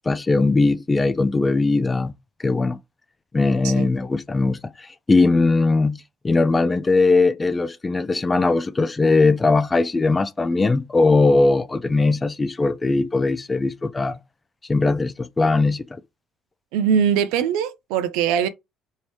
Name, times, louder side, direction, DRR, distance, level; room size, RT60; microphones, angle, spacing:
voice 1, 0.1-2.1 2.4-2.8 3.3-14.2 14.7-16.0, left 3 dB, 20° left, 0.3 m, -20 dB
voice 2, 16.7-18.5, right 8 dB, 85° right, 0.4 m, -21 dB
2.9 x 2.7 x 3.1 m
supercardioid pair, 80°, 0 cm